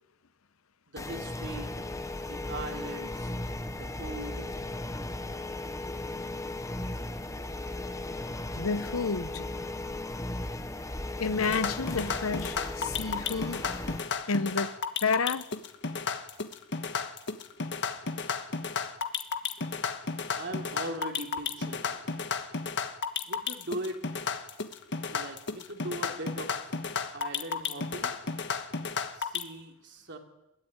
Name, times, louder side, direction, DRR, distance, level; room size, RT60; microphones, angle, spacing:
voice 1, 0.9-1.8 2.1-3.3 3.7-4.5 20.3-22.0 23.3-24.0 25.1-26.6 27.1-28.1 29.1-30.2, right 1 dB, 60° right, 3.1 m, -40 dB
sound 1, 1.0-14.0, left 2 dB, 15° left, 1.0 m, -36 dB
voice 2, 8.6-9.5 11.2-13.6 14.3-14.7 15.0-15.4, left 4 dB, 80° left, 0.9 m, -30 dB
sound 2, 11.5-29.4, left 5 dB, 60° left, 1.5 m, -33 dB
21.0 x 15.0 x 9.8 m
head